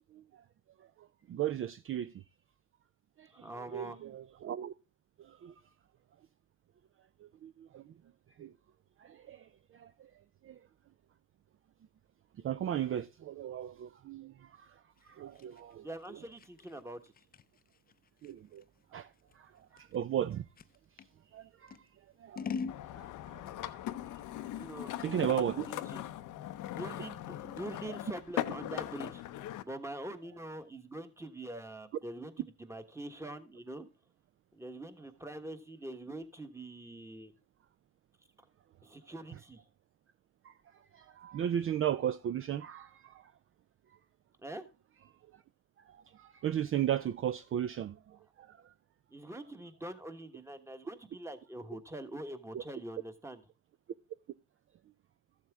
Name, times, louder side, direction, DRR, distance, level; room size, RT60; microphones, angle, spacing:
voice 1, 0.1-0.4 0.8-2.2 3.2-4.7 5.2-5.5 7.2-7.9 8.4-8.5 9.0-10.1 10.4-10.7 12.4-15.9 18.2-18.6 18.9-20.5 21.3-22.5 22.9-23.9 25.0-25.7 40.4-43.3 45.3-45.4 45.8-48.7 52.5-52.6, right 10 dB, 45° right, 0.4 m, -37 dB
voice 2, 3.3-4.0 15.8-17.1 24.4-26.0 26.7-29.2 29.6-32.3 32.6-33.9 34.5-37.3 38.8-39.6 44.4-44.7 49.1-53.4, right 1 dB, 10° right, 1.3 m, -44 dB
Scissors, 15.0-21.1 21.7-22.8, left 6 dB, 30° left, 0.5 m, -44 dB
sound 1, 22.7-29.6, left 13 dB, 85° left, 0.7 m, -40 dB
13.5 x 7.4 x 3.5 m
cardioid pair, 90°, 30 cm